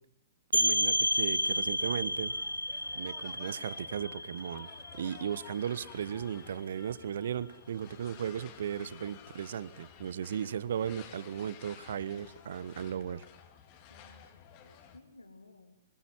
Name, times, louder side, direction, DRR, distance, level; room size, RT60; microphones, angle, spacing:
voice 1, 0.5-2.3 2.9-4.7 5.0-13.2, right 9 dB, 55° right, 19 dB, 1.3 m, -36 dB
sound 1, 0.5-6.0, equal, 90° right, 0.9 m, -31 dB
sound 2, 0.8-15.0, left 8 dB, 35° left, 3.7 m, -53 dB
voice 2, 13.9-15.9, left 2 dB, 80° left, 7 dB, 2.6 m, -57 dB
26.0 x 24.5 x 7.5 m, 0.77 s
figure-of-eight pair, 110°, 0 cm